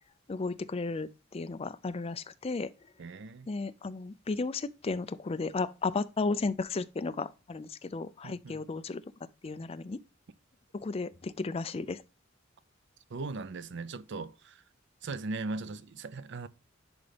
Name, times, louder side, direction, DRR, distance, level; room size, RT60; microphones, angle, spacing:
voice 1, 0.3-2.7 3.5-9.0 9.4-10.0 10.7-12.0, left 3 dB, 30° left, 0.4 m, -34 dB
voice 2, 3.0-3.5 8.2-8.6 13.1-14.7 15.0-16.5, right 3 dB, 60° right, 0.5 m, -39 dB
10.5 x 4.0 x 3.3 m
head